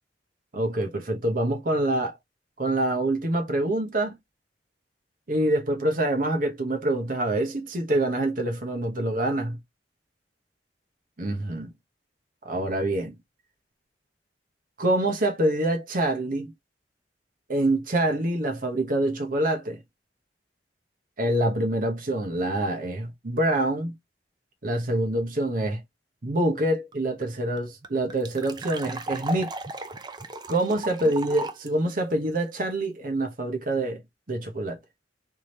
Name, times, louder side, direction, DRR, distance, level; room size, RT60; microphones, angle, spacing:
voice 1, 0.5-2.2 2.6-4.2 5.3-9.6 11.2-11.7 12.4-13.1 14.8-16.5 17.5-19.8 21.2-23.9 24.6-25.8 26.2-29.5 30.5-34.0 34.3-34.8, right 1 dB, 50° right, 1.1 m, -26 dB
sound 1, 26.9-27.0 27.2-27.3 27.6-31.7, right 2 dB, 25° right, 0.6 m, -36 dB
3.6 x 3.3 x 4.3 m
head